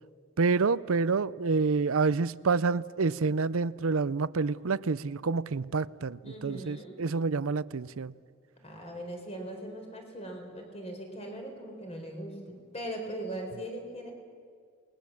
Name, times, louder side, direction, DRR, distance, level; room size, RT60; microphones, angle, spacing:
voice 1, 0.4-8.1, right 4 dB, 65° right, 0.6 m, -28 dB
voice 2, 6.2-7.0 8.6-14.1, right 1 dB, 30° left, 4.3 m, -40 dB
28.5 x 21.0 x 7.3 m
head